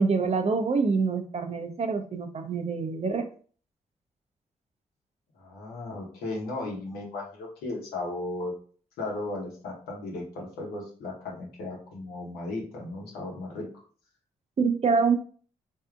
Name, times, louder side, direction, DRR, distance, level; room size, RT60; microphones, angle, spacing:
voice 1, 0.0-3.3 14.6-15.2, right 4 dB, 45° right, 7 dB, 0.6 m, -25 dB
voice 2, 5.3-8.6 9.0-13.7, left 2 dB, 85° left, -2 dB, 1.0 m, -35 dB
3.3 x 2.7 x 2.4 m, 0.42 s
supercardioid pair, 45°, 16 cm